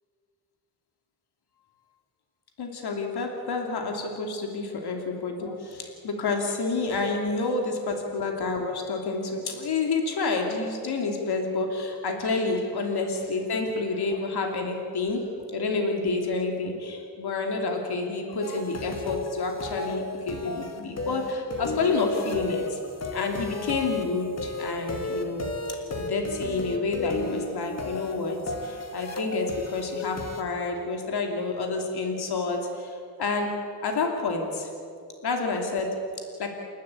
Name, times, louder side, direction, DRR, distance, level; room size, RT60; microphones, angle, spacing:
voice 1, 2.6-15.2 15.5-22.8 23.1-33.5 33.8-34.7 35.2-35.9 36.4-36.6, left 3 dB, 70° left, 2 dB, 2.7 m, -29 dB
sound 1, 18.4-30.4, left 2 dB, 40° left, 2.3 m, -34 dB
29.0 x 12.0 x 8.4 m, 2.4 s
cardioid pair, 100°, 39 cm